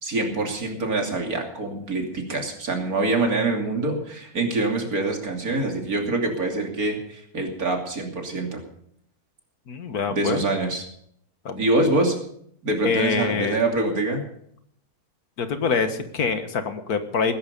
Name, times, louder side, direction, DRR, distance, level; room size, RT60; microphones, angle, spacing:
voice 1, 0.0-8.6 10.1-10.8 11.6-12.2 12.6-14.3, right 2 dB, 75° right, 2 dB, 3.3 m, -25 dB
voice 2, 9.7-10.4 11.5-11.7 12.8-13.6 15.4-17.3, left 5 dB, 80° left, 9 dB, 1.9 m, -25 dB
19.5 x 10.5 x 5.4 m, 0.66 s
omnidirectional pair, 1.6 m